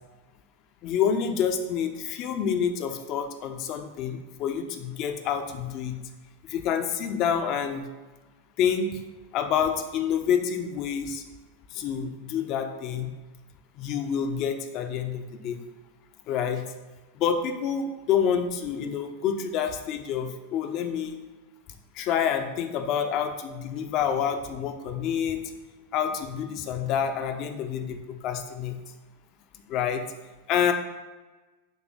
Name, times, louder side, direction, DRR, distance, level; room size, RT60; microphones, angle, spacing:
voice 1, 0.8-6.0 6.5-7.9 8.6-9.0 9.3-11.2 11.7-13.1 13.8-15.6 16.3-16.6 17.2-21.2 22.0-25.4 25.9-28.8 29.7-30.0 30.5-30.7, left 8 dB, 40° left, 6 dB, 0.4 m, -28 dB
4.0 x 2.7 x 3.6 m, 1.2 s
figure-of-eight pair, 90°, 0 cm